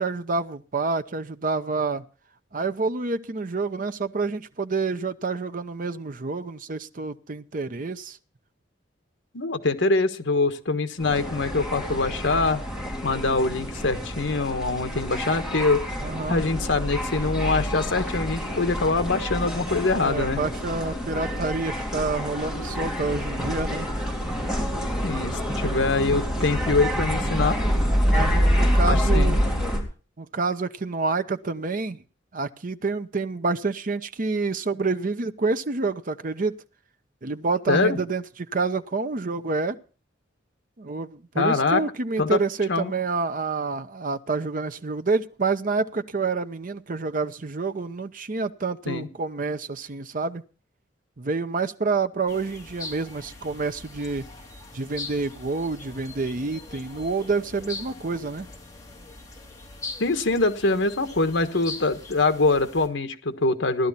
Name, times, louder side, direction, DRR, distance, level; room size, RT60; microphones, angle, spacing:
voice 1, 0.0-2.0 2.5-8.2 16.0-16.4 19.9-23.9 28.1-29.4 30.2-32.0 32.3-36.5 37.2-39.8 40.8-50.4 51.2-54.3 54.7-58.5, right 4 dB, 45° right, 0.7 m, -28 dB
voice 2, 9.3-12.6 13.0-15.8 16.3-20.4 25.0-27.6 28.9-29.4 37.7-38.0 41.3-41.8 42.2-42.4 42.7-42.9 48.9-49.1 60.0-63.9, left 3 dB, 75° left, 1.3 m, -24 dB
sound 1, 11.0-29.8, equal, 5° right, 3.5 m, -27 dB
sound 2, 52.3-62.9, left 3 dB, 20° left, 3.3 m, -41 dB
16.0 x 12.0 x 4.2 m
head